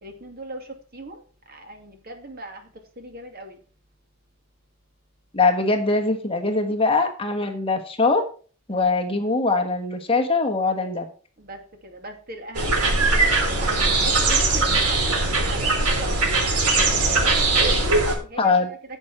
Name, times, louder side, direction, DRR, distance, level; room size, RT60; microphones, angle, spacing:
voice 1, 0.0-1.2 1.5-2.7 3.0-3.6 11.4-18.5, right 1 dB, 40° right, 4 dB, 2.5 m, -39 dB
voice 2, 5.3-8.2 8.7-11.1 18.4-18.7, left 3 dB, 25° left, 4 dB, 1.4 m, -22 dB
sound 1, 12.5-18.1, right 3 dB, 90° right, 3.6 m, -20 dB
10.5 x 8.0 x 4.3 m, 0.39 s
head